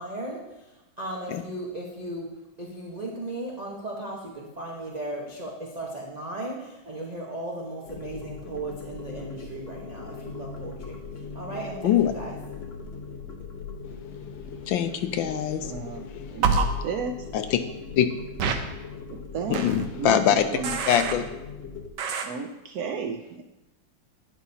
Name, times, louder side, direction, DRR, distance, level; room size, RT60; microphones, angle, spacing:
voice 1, 0.0-11.0 11.3-12.4, right 1 dB, 30° right, -3 dB, 0.8 m, -36 dB
sound 1, 7.8-21.9, left 5 dB, 50° left, 0.7 m, -40 dB
voice 2, 14.7-15.7 17.3-17.6 18.0-18.1 19.5-20.5 20.9-21.2, left 9 dB, 75° left, 9 dB, 1.2 m, -23 dB
voice 3, 15.7-16.0 16.3-17.1 19.3-19.6 20.0-20.2 20.6-20.7 22.3-23.4, right 5 dB, 85° right, 6 dB, 0.8 m, -32 dB
sound 2, 16.4-16.6 18.4-18.5 19.5-19.9 20.6-21.1 22.0-22.3, right 5 dB, 65° right, 1.3 m, -25 dB
11.0 x 10.0 x 2.8 m, 0.98 s
omnidirectional pair, 2.3 m